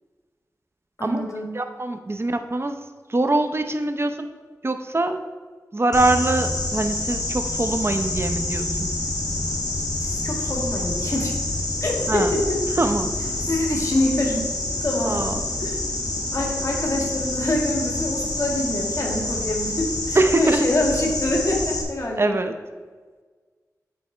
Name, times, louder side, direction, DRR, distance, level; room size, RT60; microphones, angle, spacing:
voice 1, 1.0-1.5 10.0-11.3 11.8-12.6 13.5-14.5 14.8-15.8 16.3-22.3, left 1 dB, 50° left, -1 dB, 1.8 m, -25 dB
voice 2, 1.5-2.8 3.1-4.3 4.6-5.2 5.7-8.9 12.1-12.3 12.8-13.1 15.0-15.5 20.1-20.7 22.2-22.5, right 2 dB, 40° right, 7 dB, 0.6 m, -23 dB
sound 1, 5.9-21.8, left 2 dB, 75° left, 1.2 m, -27 dB
9.4 x 4.1 x 4.4 m, 1.5 s
cardioid pair, 50°, 7 cm